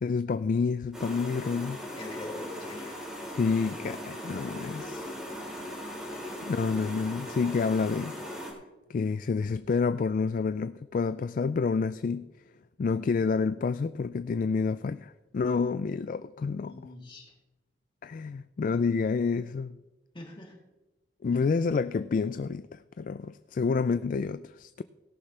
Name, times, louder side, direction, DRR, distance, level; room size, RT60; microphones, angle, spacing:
voice 1, 0.0-1.8 3.4-5.1 6.4-8.2 8.9-12.3 12.8-16.8 18.0-19.8 21.2-24.8, left 5 dB, 50° left, 0.3 m, -29 dB
sound 1, 0.9-8.5, equal, 5° right, 3.8 m, -39 dB
voice 2, 2.0-3.0 16.7-17.3 20.1-20.6, left 2 dB, 30° left, 3.0 m, -43 dB
17.5 x 11.5 x 3.3 m
head